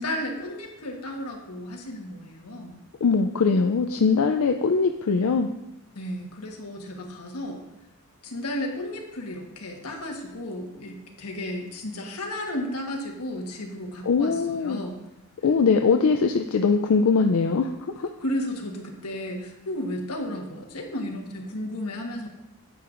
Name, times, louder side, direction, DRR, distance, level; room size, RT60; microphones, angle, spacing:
voice 1, 0.0-2.8 5.9-7.6 8.2-15.0 18.2-22.3, left 1 dB, 90° left, 1 dB, 1.4 m, -33 dB
voice 2, 3.0-5.5 14.1-14.8 15.4-17.7 18.0-18.1, left 5 dB, 70° left, 5 dB, 0.4 m, -21 dB
9.8 x 8.5 x 2.5 m, 0.93 s
head